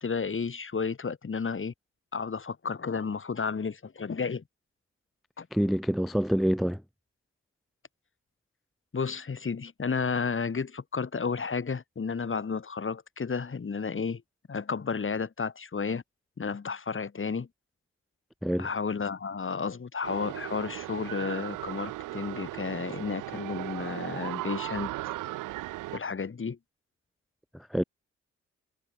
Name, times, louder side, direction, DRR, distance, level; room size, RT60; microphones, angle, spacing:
voice 1, 0.0-1.7 2.1-4.4 5.4-5.5 8.9-14.2 14.5-16.0 16.4-17.5 18.6-24.9 25.9-26.6, left 5 dB, 40° left, 2.4 m, -32 dB
voice 2, 5.5-6.8 18.4-18.7 27.5-27.8, equal, ahead, 0.3 m, -26 dB
sound 1, 20.0-26.0, right 17 dB, 80° right, 0.6 m, -37 dB
supercardioid pair, 50°, 31 cm